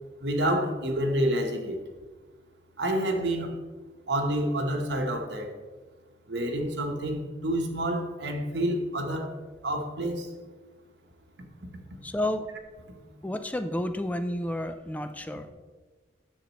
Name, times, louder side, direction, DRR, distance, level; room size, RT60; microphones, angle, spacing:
voice 1, 0.2-1.8 2.8-3.5 4.1-5.5 6.3-9.3 9.6-10.3, right 1 dB, 85° right, 4 dB, 1.1 m, -28 dB
voice 2, 12.0-12.5 13.2-15.5, left 1 dB, 10° left, 9 dB, 0.3 m, -31 dB
10.0 x 7.2 x 3.0 m, 1.4 s
head